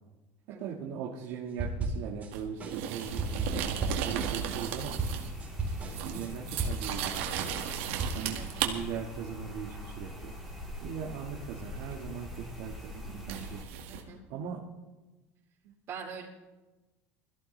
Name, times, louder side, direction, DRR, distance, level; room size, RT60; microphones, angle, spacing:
voice 1, 0.6-3.6 4.0-5.0 6.0-7.7 8.1-10.3 10.8-13.9 14.3-14.6 15.6-15.8, right 7 dB, 65° right, -2 dB, 1.7 m, -39 dB
sound 1, 1.6-2.3 2.6-7.1 7.4-8.1, right 3 dB, 25° right, 4.6 m, -34 dB
sound 2, 2.3-5.4 5.7-8.7 11.9-12.0 13.3-14.0, right 10 dB, 80° right, 1.9 m, -35 dB
sound 3, 3.0-13.6, left 1 dB, ahead, 3.4 m, -43 dB
voice 2, 13.9-14.2 15.9-16.3, right 5 dB, 45° right, -2 dB, 4.3 m, -43 dB
21.5 x 14.5 x 3.3 m, 1.1 s
supercardioid pair, 135°, 6 cm